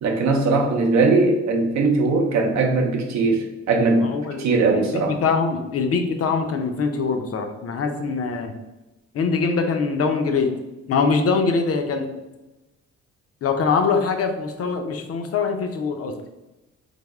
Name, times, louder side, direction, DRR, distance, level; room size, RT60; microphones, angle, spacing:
voice 1, 0.0-4.1 4.4-5.2, right 3 dB, 65° right, 2 dB, 0.6 m, -20 dB
voice 2, 4.0-4.4 4.7-8.5 9.1-10.5 10.9-12.1 13.4-16.1, left 4 dB, 50° left, 5 dB, 0.6 m, -23 dB
3.4 x 2.0 x 3.4 m, 1.0 s
cardioid pair, 90°, 30 cm